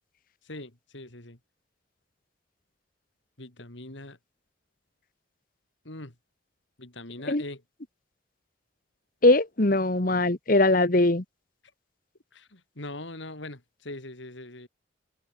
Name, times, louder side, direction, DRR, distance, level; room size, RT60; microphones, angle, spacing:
voice 1, 0.4-1.4 3.4-4.2 5.8-6.2 6.8-7.6 12.3-14.7, left 2 dB, 70° left, 3.5 m, -41 dB
voice 2, 9.2-11.2, left 2 dB, 45° left, 1.3 m, -21 dB
open air
head